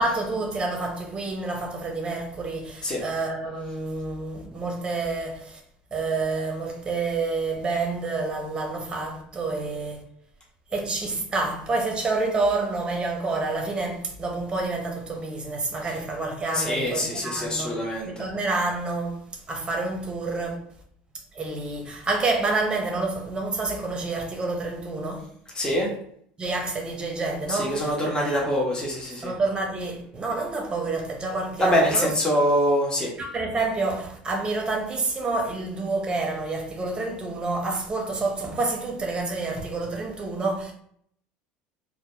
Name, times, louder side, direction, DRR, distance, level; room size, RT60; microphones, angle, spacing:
voice 1, 0.0-5.6 5.9-10.0 10.7-17.8 18.0-20.6 21.3-25.3 26.4-27.9 28.2-28.4 29.2-32.1 33.2-40.7, right 3 dB, 20° right, 0.6 m, -28 dB
voice 2, 16.5-18.2 25.5-25.9 27.5-29.3 31.6-33.1, equal, 20° left, 0.6 m, -24 dB
2.1 x 2.1 x 3.0 m
supercardioid pair, 110°, 4 cm